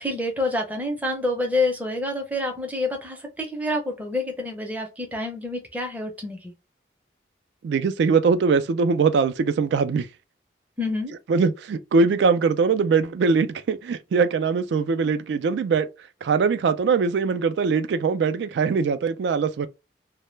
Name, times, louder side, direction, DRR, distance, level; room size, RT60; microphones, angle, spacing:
voice 1, 0.0-6.5 10.8-11.1, left 2 dB, 10° right, 0.5 m, -27 dB
voice 2, 7.6-10.1 11.3-15.9 16.2-19.7, right 5 dB, 70° right, 0.3 m, -22 dB
2.1 x 2.1 x 3.1 m
head